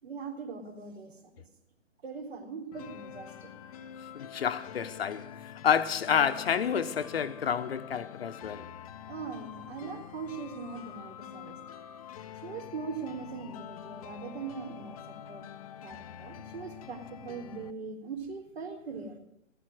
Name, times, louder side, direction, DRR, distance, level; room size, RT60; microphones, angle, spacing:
voice 1, 0.0-1.5 2.0-3.5 9.1-11.6 12.3-15.5 15.8-19.2, right 5 dB, 55° right, 3.8 m, -41 dB
sound 1, 2.7-17.7, left 9 dB, 30° left, 0.7 m, -46 dB
voice 2, 4.1-5.3 5.6-8.7, left 7 dB, 50° left, 1.0 m, -29 dB
16.0 x 14.0 x 6.4 m
figure-of-eight pair, 140°, 38 cm